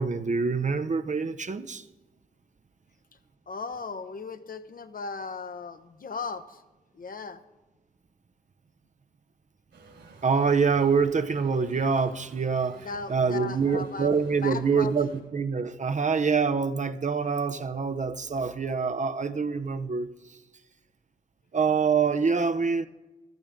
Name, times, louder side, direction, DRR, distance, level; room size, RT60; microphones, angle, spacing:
voice 1, 0.0-1.9 10.2-20.4 21.5-22.9, right 5 dB, 40° right, 0.7 m, -26 dB
voice 2, 3.5-6.6 6.9-7.4 12.8-14.9, left 4 dB, 50° left, 1.0 m, -37 dB
sound 1, 9.7-15.2, right 4 dB, 70° right, 3.7 m, -52 dB
14.5 x 12.5 x 3.7 m
supercardioid pair, 45°, 19 cm